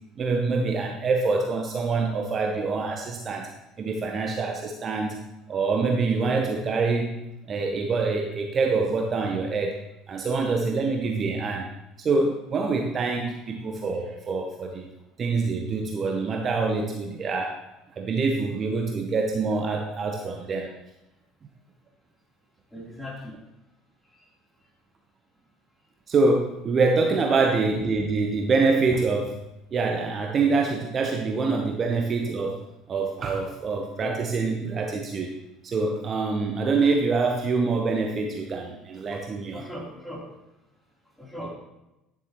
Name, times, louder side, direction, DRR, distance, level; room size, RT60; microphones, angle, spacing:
voice 1, 0.2-5.2 5.5-7.1 7.5-9.8 10.1-11.7 12.0-14.9 15.2-17.6 18.0-20.7 26.1-29.4 29.7-32.6 32.9-35.3 35.6-39.7, right 4 dB, 40° right, 2 dB, 0.8 m, -25 dB
voice 2, 22.7-23.4 34.0-34.2 39.1-39.2 39.5-40.2 41.2-41.5, equal, 5° left, -4 dB, 3.4 m, -37 dB
10.0 x 7.2 x 3.0 m, 0.95 s
figure-of-eight pair, 60°, 0 cm